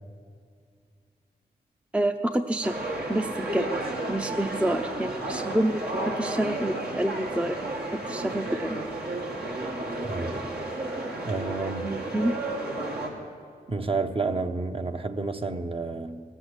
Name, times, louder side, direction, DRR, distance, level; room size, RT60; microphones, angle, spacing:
voice 1, 1.9-2.8 3.1-3.7 4.1-8.8 11.8-12.3, right 1 dB, 5° right, 7 dB, 0.6 m, -28 dB
sound 1, 2.6-13.1, right 2 dB, 70° right, 2.2 m, -32 dB
voice 2, 10.0-10.5 11.2-12.1 13.7-16.2, right 3 dB, 35° right, 6 dB, 0.9 m, -30 dB
17.5 x 7.9 x 8.1 m, 2.2 s
cardioid pair, 45°, 17 cm